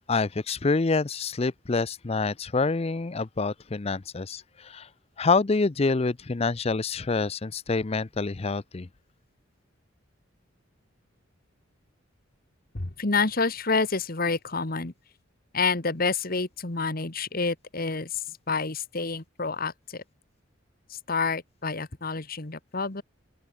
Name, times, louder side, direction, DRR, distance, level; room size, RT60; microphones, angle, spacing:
voice 1, 0.1-4.9 5.2-8.9, left 3 dB, 30° left, 0.5 m, -27 dB
voice 2, 12.7-14.9 15.5-20.0 21.1-23.0, left 4 dB, 50° left, 1.6 m, -28 dB
open air
head